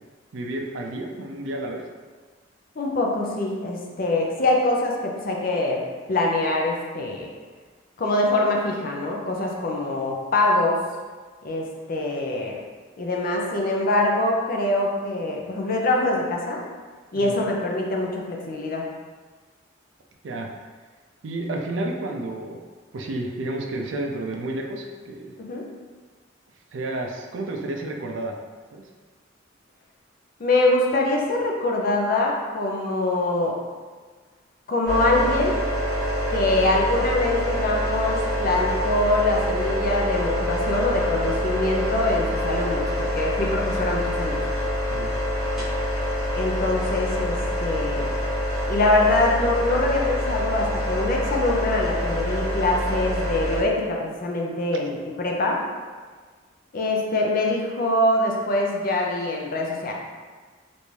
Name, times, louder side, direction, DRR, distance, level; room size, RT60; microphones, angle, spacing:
voice 1, 0.3-1.8 17.1-17.3 20.2-20.5 21.2-22.6 22.9-25.3 26.7-28.4 28.7-28.8 44.9-45.1 54.7-54.8, right 2 dB, 70° right, 2 dB, 0.4 m, -31 dB
voice 2, 2.8-5.8 6.1-7.3 8.0-10.8 11.4-12.6 13.0-16.6 17.1-18.8 25.4-25.6 30.4-33.6 34.7-35.6 36.3-44.4 46.4-48.1 48.7-55.6 56.7-59.9, left 2 dB, 50° left, -1 dB, 0.5 m, -24 dB
sound 1, 34.9-53.6, equal, ahead, 1.1 m, -26 dB
3.3 x 2.6 x 3.1 m, 1.4 s
head